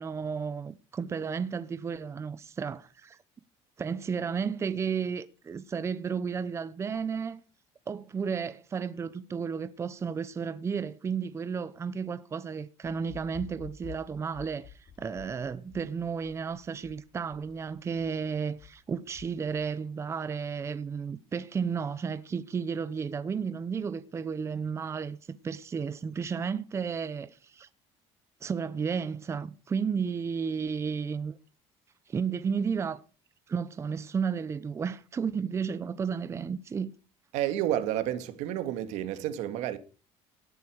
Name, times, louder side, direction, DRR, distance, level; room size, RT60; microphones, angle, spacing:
voice 1, 0.0-3.2 3.8-7.4 7.9-27.7 28.4-31.4 32.1-33.0 33.5-36.9, right 6 dB, 25° right, 0.8 m, -33 dB
sound 1, 12.8-19.6, left 10 dB, 50° left, 4.5 m, -50 dB
voice 2, 37.3-39.8, right 12 dB, 80° right, 2.1 m, -30 dB
17.0 x 8.4 x 6.4 m
cardioid pair, 145°, 12 cm